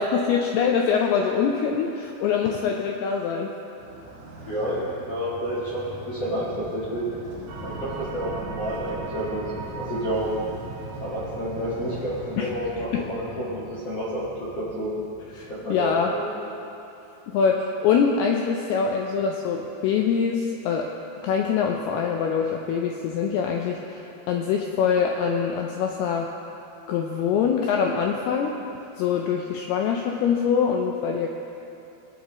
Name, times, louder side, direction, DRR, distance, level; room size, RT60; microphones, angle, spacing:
voice 1, 0.0-3.5 12.4-12.5 12.8-13.0 15.3-16.2 17.3-20.9 21.2-26.3 26.9-28.5 29.0-31.3, left 6 dB, 85° left, 1 dB, 2.3 m, -24 dB
Motorcycle, 3.8-16.0, right 2 dB, 45° right, 3.2 m, -41 dB
voice 2, 4.5-7.0 7.6-9.4 9.8-10.3 11.0-14.9 15.5-16.5, equal, 55° left, -9 dB, 1.8 m, -30 dB
sound 1, 7.5-15.5, right 4 dB, 75° right, 3.0 m, -41 dB
20.0 x 8.5 x 3.0 m, 2.9 s
omnidirectional pair, 5.1 m